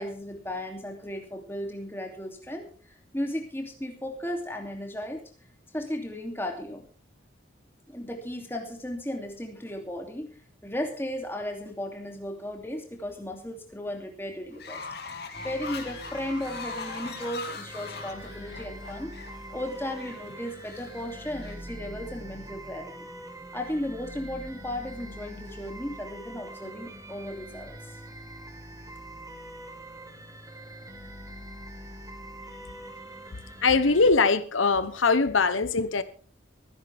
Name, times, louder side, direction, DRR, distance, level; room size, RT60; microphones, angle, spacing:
voice 1, 0.0-2.7 3.1-5.3 5.7-6.8 7.9-14.8 15.1-15.2 15.4-19.1 19.5-23.1 23.5-27.8, left 1 dB, 10° left, 2.7 m, -35 dB
Fowl, 14.5-21.5, left 4 dB, 55° left, 2.5 m, -41 dB
sound 1, 15.3-34.1, right 1 dB, 15° right, 1.8 m, -43 dB
voice 2, 33.6-36.0, left 4 dB, 90° left, 1.0 m, -22 dB
24.0 x 10.5 x 3.5 m
head